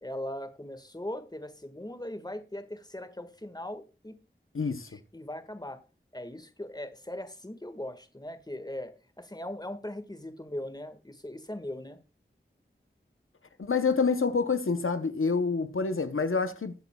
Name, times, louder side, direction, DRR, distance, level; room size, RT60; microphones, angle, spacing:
voice 1, 0.0-4.2 4.9-5.8 6.1-12.0, left 1 dB, 20° left, 1.6 m, -39 dB
voice 2, 4.5-4.9 13.6-16.7, left 4 dB, 90° left, 0.8 m, -27 dB
21.0 x 8.1 x 2.3 m
wide cardioid pair, 45°, 21 cm